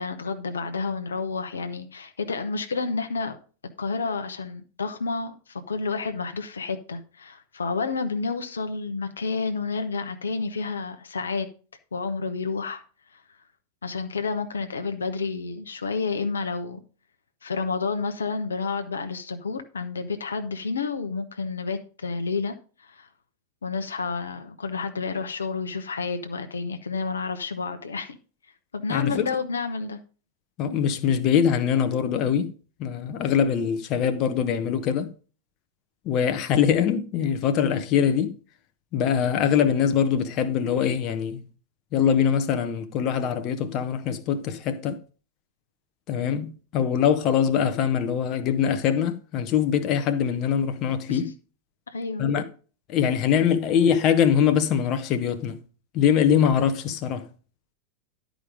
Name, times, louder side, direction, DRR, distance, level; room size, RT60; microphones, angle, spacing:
voice 1, 0.0-3.4 3.8-11.5 11.9-12.8 13.1-13.2 13.8-16.8 17.4-22.6 22.8-23.1 23.6-28.2 28.7-30.0 51.1-51.3 51.9-52.3, left 4 dB, 70° left, 0.9 m, -30 dB
voice 2, 28.9-29.3 30.6-32.5 32.8-35.1 36.0-38.4 38.9-41.4 41.9-45.0 46.1-51.3 52.2-52.4 52.9-55.6 55.9-57.3, left 8 dB, 35° left, 0.8 m, -23 dB
11.0 x 5.1 x 5.1 m
figure-of-eight pair, 90°, 0 cm